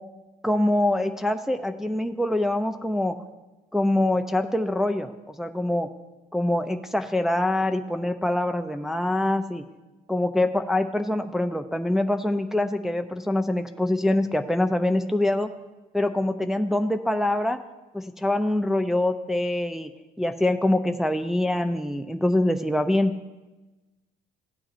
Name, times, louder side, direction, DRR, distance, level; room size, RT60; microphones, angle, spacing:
voice 1, 0.4-3.2 3.7-5.9 6.3-9.6 10.1-15.5 15.9-17.6 17.9-19.9 20.2-23.1, left 1 dB, ahead, 6 dB, 0.4 m, -24 dB
16.0 x 8.8 x 2.5 m, 1.1 s
cardioid pair, 110°, 17 cm